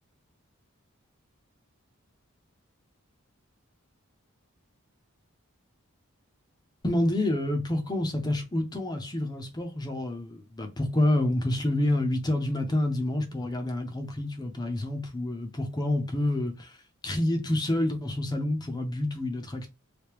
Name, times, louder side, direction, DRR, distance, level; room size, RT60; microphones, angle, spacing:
voice 1, 6.8-16.8 17.0-19.7, left 1 dB, 20° left, 0.7 m, -28 dB
3.3 x 2.8 x 3.0 m
head